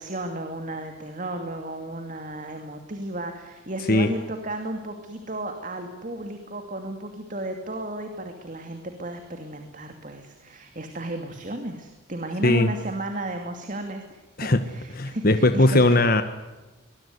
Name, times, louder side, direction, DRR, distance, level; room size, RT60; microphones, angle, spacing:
voice 1, 0.0-16.0, right 1 dB, 40° right, 5 dB, 2.6 m, -34 dB
voice 2, 14.9-16.2, left 2 dB, 50° left, 9 dB, 1.5 m, -19 dB
24.0 x 21.5 x 9.6 m, 1.1 s
head